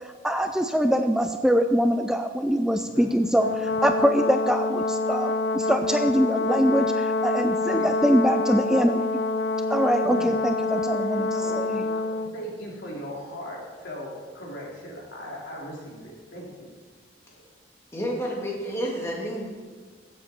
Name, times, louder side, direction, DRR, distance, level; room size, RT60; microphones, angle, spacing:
voice 1, 0.2-9.0 9.7-11.8, equal, 5° right, 6 dB, 0.3 m, -23 dB
Brass instrument, 3.4-12.3, left 3 dB, 65° left, 0.5 m, -26 dB
voice 2, 10.0-10.3 11.0-16.5 17.3-17.4, equal, 85° left, -3 dB, 3.4 m, -39 dB
voice 3, 17.9-19.5, equal, 15° left, -3 dB, 2.2 m, -30 dB
16.0 x 7.9 x 4.4 m, 1.5 s
head